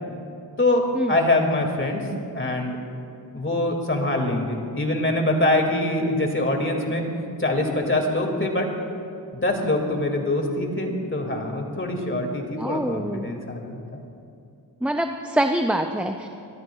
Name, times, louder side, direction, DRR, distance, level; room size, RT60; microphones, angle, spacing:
voice 1, 0.6-2.0 2.3-2.8 3.3-7.0 7.4-8.7 9.3-14.0, left 1 dB, 25° left, 2 dB, 2.2 m, -24 dB
voice 2, 12.6-13.3 14.8-16.3, right 1 dB, 5° right, 5 dB, 0.5 m, -25 dB
26.0 x 13.5 x 2.4 m, 2.6 s
cardioid pair, 70°, 43 cm